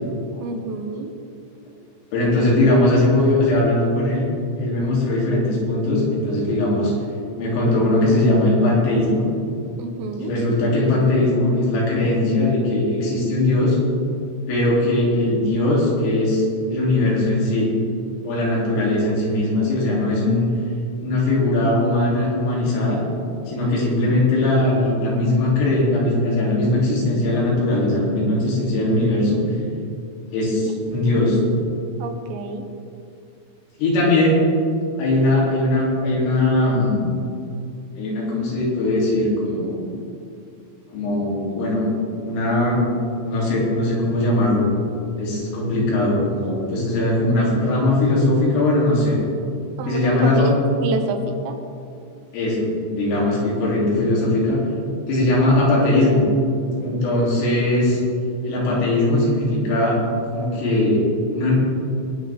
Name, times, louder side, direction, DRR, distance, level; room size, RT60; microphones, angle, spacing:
voice 1, 0.4-1.1 9.8-10.3 31.0-31.1 32.0-32.7 49.8-50.6 50.8-51.6, right 3 dB, 90° right, 5 dB, 3.8 m, -29 dB
voice 2, 2.1-4.3 4.6-6.9 7.4-9.2 10.2-13.8 14.5-17.7 18.2-20.5 21.0-23.0 23.5-29.4 30.3-31.4 33.8-34.4 35.0-37.0 38.0-39.9 40.9-41.9 42.2-42.8 43.2-44.7 45.2-49.2 49.9-50.5 52.3-54.6 55.1-56.3 56.8-58.0 58.4-60.0 60.3-61.0 61.3-61.5, left 2 dB, 90° left, -5 dB, 5.8 m, -20 dB
20.5 x 9.5 x 3.6 m, 2.5 s
omnidirectional pair, 5.7 m